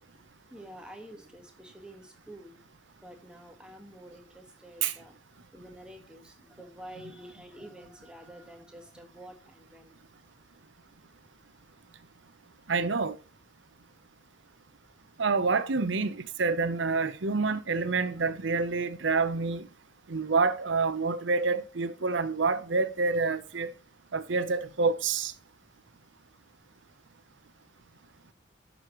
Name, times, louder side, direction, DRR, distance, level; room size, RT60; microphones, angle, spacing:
voice 1, 0.5-2.6 3.0-5.1 5.5-10.0, right 1 dB, 5° right, 1.5 m, -48 dB
voice 2, 12.7-13.2 15.2-19.7 20.1-23.7 24.1-25.3, right 4 dB, 70° right, 0.8 m, -27 dB
11.0 x 6.4 x 3.1 m
head